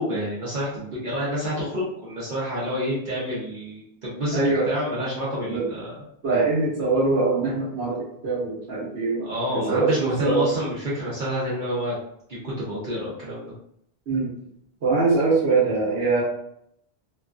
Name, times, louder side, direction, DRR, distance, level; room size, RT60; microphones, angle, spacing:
voice 1, 0.0-4.4 4.7-6.0 9.2-12.0 12.3-13.5, equal, 55° right, -8 dB, 0.9 m, -28 dB
voice 2, 4.3-4.7 5.5-5.8 6.2-10.5 14.1-14.3 14.8-16.2, right 3 dB, 85° right, -7 dB, 1.1 m, -23 dB
3.0 x 2.3 x 2.4 m, 0.72 s
omnidirectional pair, 1.1 m